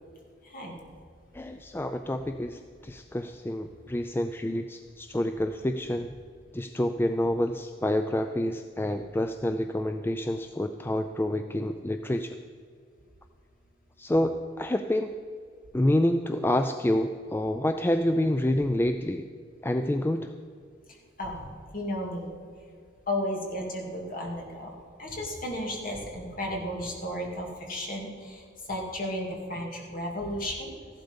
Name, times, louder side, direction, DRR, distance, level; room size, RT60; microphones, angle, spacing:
voice 1, 0.4-0.8 21.2-22.3 23.1-24.7 25.0-28.4 28.7-30.7, left 1 dB, 45° left, 0 dB, 2.5 m, -34 dB
voice 2, 1.3-6.1 6.5-12.4 14.0-15.1 15.7-19.2 19.6-20.3, left 1 dB, 10° left, 8 dB, 0.3 m, -28 dB
14.5 x 11.5 x 5.3 m, 2.1 s
head